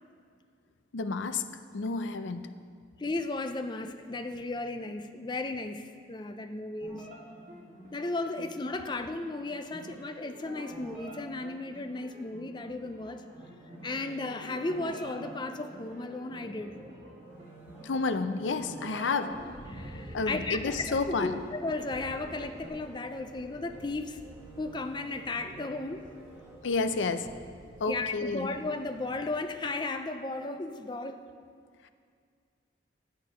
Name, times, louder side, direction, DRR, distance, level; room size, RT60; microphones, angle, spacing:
voice 1, 0.9-1.4 1.7-2.5 17.8-19.4 20.1-21.4 26.6-27.3 27.8-28.5 31.8-31.9, left 4 dB, 85° left, 10 dB, 0.5 m, -30 dB
voice 2, 3.0-7.1 7.9-13.2 13.8-16.7 19.7-24.2 24.6-26.0 27.9-31.2, left 2 dB, 25° left, 7 dB, 0.4 m, -35 dB
sound 1, 6.8-22.7, equal, 40° right, 2.3 m, -48 dB
sound 2, 13.3-28.3 28.8-28.9, right 2 dB, 10° right, 1.3 m, -51 dB
sound 3, 19.3-29.5, equal, 65° left, 2.0 m, -50 dB
11.0 x 8.8 x 5.1 m, 2.1 s
head